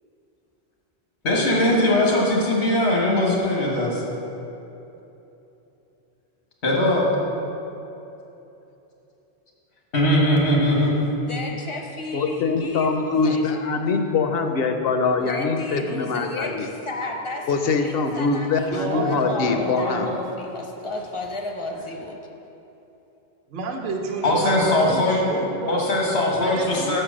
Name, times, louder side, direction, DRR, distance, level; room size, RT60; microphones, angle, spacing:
voice 1, 1.2-4.0 6.6-7.1 9.9-11.0 24.2-25.2 25.7-27.0, left 1 dB, 90° left, -3 dB, 1.5 m, -20 dB
voice 2, 11.3-13.5 15.2-22.2, left 2 dB, 40° left, 2 dB, 0.5 m, -33 dB
voice 3, 12.1-16.7 17.5-20.1, left 4 dB, 70° left, 5 dB, 0.8 m, -23 dB
voice 4, 18.7-20.5 23.5-25.9 26.4-27.0, right 3 dB, 55° right, 2 dB, 0.8 m, -29 dB
6.5 x 4.5 x 6.1 m, 3.0 s
omnidirectional pair, 1.1 m